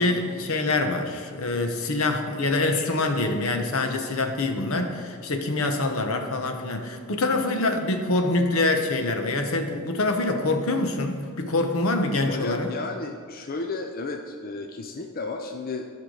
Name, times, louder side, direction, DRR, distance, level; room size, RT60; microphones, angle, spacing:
voice 1, 0.0-12.7, left 2 dB, 75° left, 5 dB, 0.9 m, -25 dB
voice 2, 12.3-15.9, left 3 dB, 45° left, 4 dB, 0.5 m, -33 dB
13.5 x 5.7 x 3.8 m, 2.1 s
head